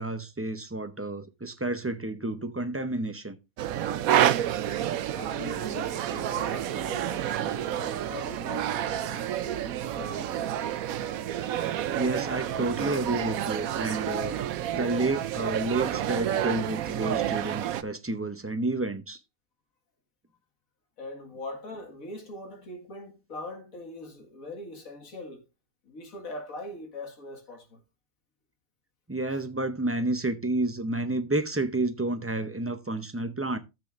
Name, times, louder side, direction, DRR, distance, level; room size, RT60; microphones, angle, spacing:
voice 1, 0.0-3.4 11.9-14.4 14.7-19.2 29.1-33.6, right 2 dB, 20° right, 0.4 m, -30 dB
sound 1, 3.6-17.8, right 11 dB, 85° right, 1.1 m, -29 dB
voice 2, 5.2-10.7 21.0-25.5 25.8-27.8, left 1 dB, 80° left, 2.3 m, -41 dB
13.5 x 7.6 x 2.5 m
omnidirectional pair, 1.4 m